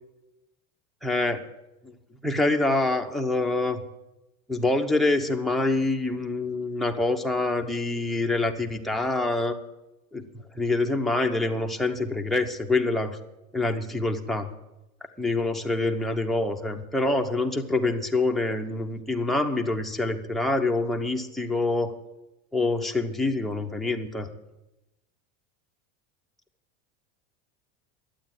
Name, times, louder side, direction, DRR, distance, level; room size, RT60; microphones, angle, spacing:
voice 1, 1.0-1.4 1.8-1.9 2.2-3.8 4.5-9.6 10.1-10.2 10.5-13.2 13.5-14.5 15.2-21.9 22.5-24.3, left 2 dB, ahead, 1 dB, 0.9 m, -26 dB
12.0 x 8.7 x 9.2 m, 0.95 s
supercardioid pair, 150°, 37 cm